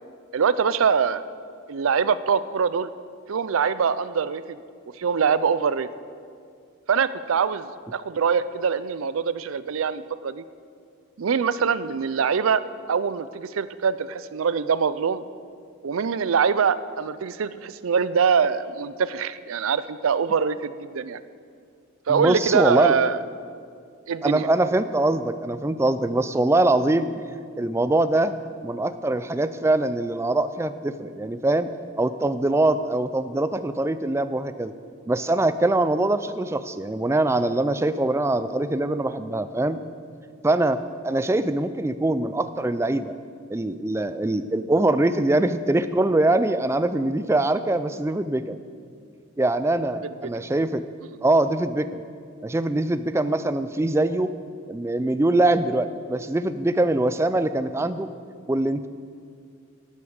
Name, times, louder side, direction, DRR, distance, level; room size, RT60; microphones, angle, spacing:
voice 1, 0.3-1.2 1.7-2.9 3.3-4.6 5.0-5.9 6.9-10.4 11.2-12.6 12.9-15.2 15.8-21.2 22.1-23.2 24.1-24.5 50.0-50.3, right 6 dB, 75° right, 15 dB, 0.4 m, -23 dB
voice 2, 22.1-23.0 24.2-27.2 27.6-28.3 28.6-31.7 32.0-34.7 35.1-39.8 40.4-40.8 41.0-43.1 43.5-48.6 49.4-50.8 51.2-52.0 52.4-54.3 54.7-58.1 58.5-58.9, right 2 dB, 15° right, 12 dB, 0.3 m, -23 dB
11.5 x 8.7 x 6.4 m, 2.2 s
head